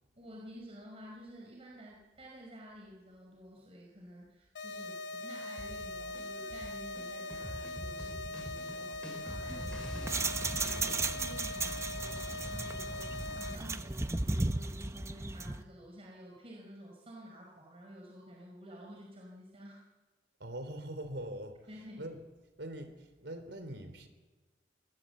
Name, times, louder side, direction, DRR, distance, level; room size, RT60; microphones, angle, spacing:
voice 1, 0.1-19.8 21.7-22.0, equal, 30° right, -1 dB, 4.8 m, -51 dB
sound 1, 4.5-13.5, left 2 dB, 85° left, 1.8 m, -41 dB
sound 2, 5.6-11.1, equal, 5° left, 5.7 m, -44 dB
sound 3, 9.5-15.6, right 3 dB, 15° right, 0.8 m, -35 dB
voice 2, 20.4-21.6 22.0-22.2 22.6-24.1, right 1 dB, 75° right, 9 dB, 3.6 m, -42 dB
26.0 x 19.0 x 8.0 m, 1.3 s
head